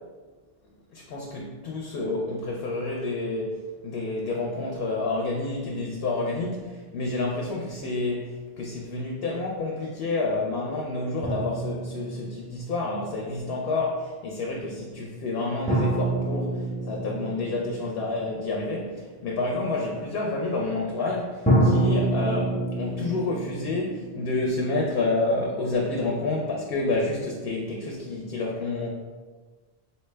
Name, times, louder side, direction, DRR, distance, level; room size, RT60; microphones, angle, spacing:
voice 1, 0.9-28.9, left 2 dB, 70° left, -1 dB, 0.8 m, -29 dB
sound 1, 11.2-13.0 15.7-18.5 21.5-25.3, right 1 dB, 10° left, 0.6 m, -27 dB
4.1 x 2.2 x 3.2 m, 1.3 s
omnidirectional pair, 1.1 m